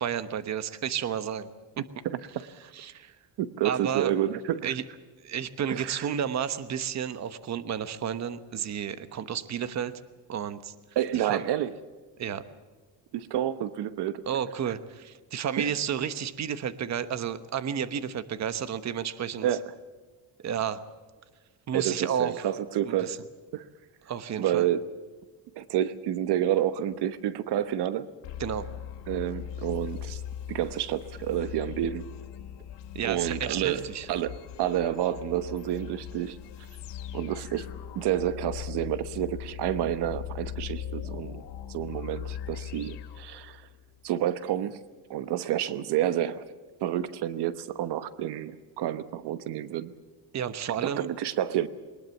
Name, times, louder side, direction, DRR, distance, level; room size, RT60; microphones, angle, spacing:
voice 1, 0.0-1.5 1.8-1.9 2.3-3.2 3.6-4.1 4.6-4.8 5.2-10.0 10.3-10.7 11.1-11.5 12.2-12.5 14.3-19.5 20.4-20.8 21.7-22.5 22.8-23.2 24.0-24.7 28.4-28.7 32.9-34.1 50.3-51.1, right 8 dB, 40° right, 13 dB, 1.1 m, -32 dB
voice 2, 2.0-2.4 3.4-4.7 5.8-6.1 11.0-11.7 13.1-14.2 15.6-15.7 19.4-19.6 21.7-23.2 23.5-23.7 24.4-24.9 25.6-28.1 29.1-30.2 30.5-32.1 33.0-36.4 37.1-37.7 37.9-41.4 41.7-43.7 44.0-44.8 45.1-46.4 46.8-49.9 50.8-51.7, right 11 dB, 75° right, 13 dB, 1.1 m, -29 dB
sound 1, 28.2-43.9, left 9 dB, 90° left, 2.4 m, -40 dB
22.0 x 20.0 x 7.2 m, 1.4 s
cardioid pair, 135°, 41 cm